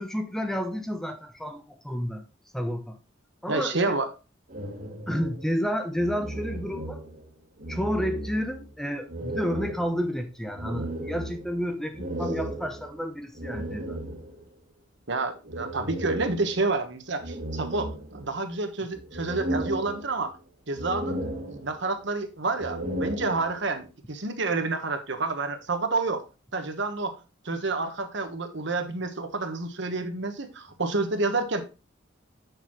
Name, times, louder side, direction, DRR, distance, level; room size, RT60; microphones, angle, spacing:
voice 1, 0.0-2.2 2.5-3.0 3.4-4.0 5.1-7.0 7.7-14.0, equal, ahead, 0.6 m, -30 dB
voice 2, 3.5-4.1 15.1-20.3 20.7-21.2 21.5-26.2 26.5-27.2 27.4-31.7, right 3 dB, 60° right, 1.2 m, -29 dB
sound 1, 4.5-7.3 7.6-8.7 9.1-14.5 15.5-16.8 17.2-18.5 18.9-20.4 20.7-22.0 22.5-23.8, right 1 dB, 45° right, 1.7 m, -35 dB
7.9 x 6.8 x 3.1 m
head